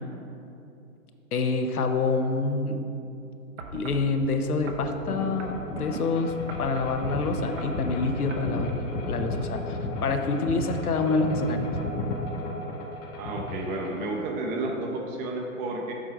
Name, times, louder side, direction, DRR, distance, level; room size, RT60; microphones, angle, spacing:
voice 1, 1.3-2.8 3.7-11.7, left 3 dB, 85° left, 6 dB, 0.8 m, -27 dB
sound 1, 3.6-4.1 4.7-6.0 6.5-7.0 7.4-7.8 8.3-8.5 9.2-9.3, right 4 dB, 50° right, 0.8 m, -39 dB
sound 2, 5.1-14.0, left 2 dB, 20° left, 0.7 m, -33 dB
voice 2, 13.2-15.9, right 2 dB, 20° right, 1 dB, 0.6 m, -31 dB
7.6 x 4.6 x 4.9 m, 2.8 s
hypercardioid pair, 125°, 43 cm